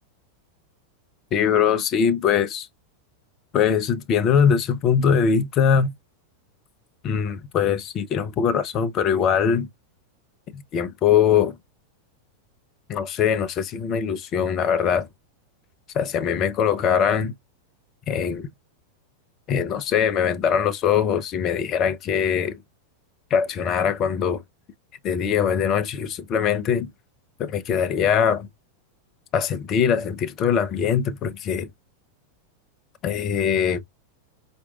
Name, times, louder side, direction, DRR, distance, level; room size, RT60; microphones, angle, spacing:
voice 1, 1.3-2.7 3.5-5.9 7.0-9.7 10.5-11.6 12.9-15.1 15.9-17.3 18.1-18.5 19.5-22.6 23.3-24.4 25.0-26.9 27.4-28.5 29.3-31.7 33.0-33.8, left 7 dB, 35° left, 0.5 m, -22 dB
4.5 x 2.5 x 2.3 m
figure-of-eight pair, 90°, 0 cm